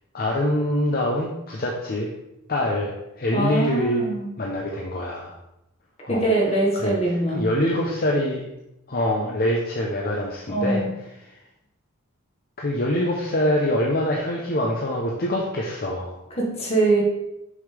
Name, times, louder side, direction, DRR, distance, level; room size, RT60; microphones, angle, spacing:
voice 1, 0.1-2.1 2.5-4.1 4.4-5.3 6.0-6.2 6.7-8.4 8.9-10.8 11.1-11.3 12.6-16.2, left 1 dB, 45° left, -1 dB, 0.8 m, -25 dB
voice 2, 3.3-4.3 6.1-7.4 10.5-10.9 16.4-17.0, right 2 dB, 30° left, -3 dB, 1.7 m, -23 dB
6.4 x 5.6 x 3.4 m, 0.89 s
head